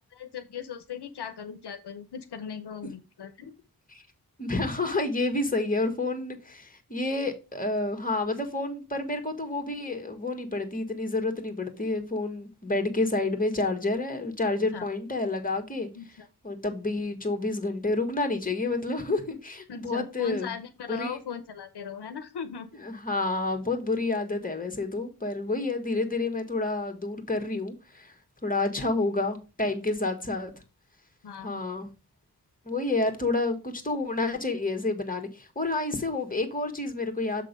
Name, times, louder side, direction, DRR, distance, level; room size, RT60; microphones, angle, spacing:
voice 1, 0.1-3.5 14.7-14.9 16.0-16.3 19.7-22.7 28.8-28.9 31.2-31.6, left 7 dB, 85° left, 0.7 m, -39 dB
voice 2, 4.4-15.9 16.4-20.5 20.9-21.2 22.8-28.1 28.4-30.5 31.4-31.9 32.6-37.4, left 2 dB, 20° left, 1.6 m, -29 dB
7.1 x 3.7 x 5.2 m
wide cardioid pair, 60°, 39 cm